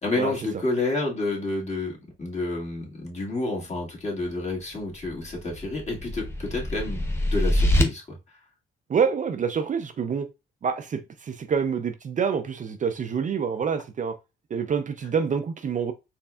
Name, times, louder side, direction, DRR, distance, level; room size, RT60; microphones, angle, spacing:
voice 1, 0.0-7.0 7.3-8.2, left 2 dB, 35° left, 1.8 m, -29 dB
sound 1, 5.0-7.8, left 1 dB, 10° left, 0.9 m, -25 dB
voice 2, 8.9-10.3 10.6-14.2 14.5-15.9, right 6 dB, 40° right, 0.5 m, -27 dB
4.2 x 3.3 x 2.3 m
cardioid pair, 90°, 20 cm